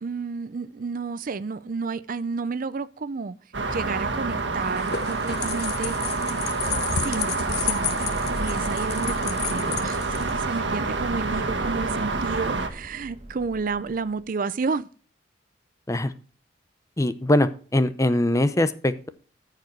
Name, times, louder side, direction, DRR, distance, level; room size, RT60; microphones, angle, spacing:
voice 1, 0.0-3.3 3.7-6.0 6.9-7.9 8.4-14.9, right 4 dB, 50° right, 0.5 m, -31 dB
sound 1, 3.5-12.7, right 3 dB, 75° right, 1.6 m, -27 dB
sound 2, 4.6-10.6, left 7 dB, 60° left, 1.0 m, -32 dB
sound 3, 8.0-14.2, right 1 dB, 35° right, 1.2 m, -39 dB
voice 2, 17.0-19.1, left 1 dB, 15° left, 0.6 m, -22 dB
14.0 x 4.9 x 4.5 m
head